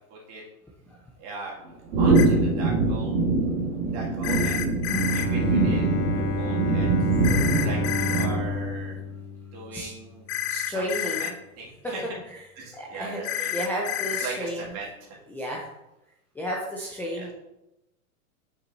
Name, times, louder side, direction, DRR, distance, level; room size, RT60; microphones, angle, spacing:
voice 1, 0.1-0.4 1.2-1.5 2.0-3.2 3.9-4.7 5.1-6.9 7.2-9.0 9.5-10.3 10.7-12.0 12.6-13.6 14.2-15.2 17.1-17.3, right 3 dB, 35° right, -3 dB, 2.3 m, -39 dB
sound 1, 1.9-8.7, right 3 dB, 65° right, 1.7 m, -23 dB
sound 2, 2.2-2.3 4.2-5.3 7.2-8.3 10.3-11.3 13.2-14.3, left 11 dB, 50° left, 0.6 m, -30 dB
Bowed string instrument, 4.9-10.1, left 2 dB, 25° left, 0.9 m, -31 dB
voice 2, 10.5-11.3 11.8-11.9 12.3-12.4 12.7-13.2 13.5-14.7 15.3-15.7 16.3-17.3, equal, 5° left, -4 dB, 0.5 m, -32 dB
6.5 x 6.0 x 2.7 m, 0.90 s
hypercardioid pair, 130°, 43 cm